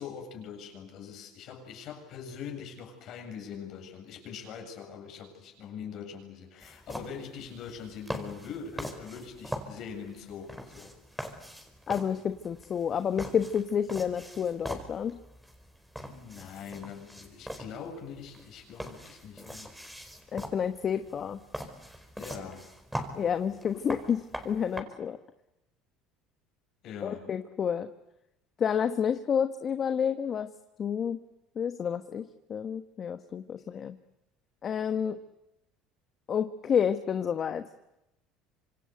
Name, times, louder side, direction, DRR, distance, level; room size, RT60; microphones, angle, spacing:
voice 1, 0.0-11.0 16.0-19.7 22.2-22.7 26.8-27.3, left 7 dB, 60° left, 3 dB, 7.6 m, -43 dB
sound 1, 6.6-24.8, equal, 5° right, 4.8 m, -42 dB
voice 2, 11.9-15.2 20.3-21.4 23.1-25.2 27.0-27.9 28.6-30.5 30.8-31.2 31.6-32.2 32.5-33.9 34.6-35.2 36.3-37.6, left 7 dB, 45° left, 9 dB, 1.2 m, -29 dB
26.5 x 26.5 x 8.1 m, 0.91 s
hypercardioid pair, 75°, 0 cm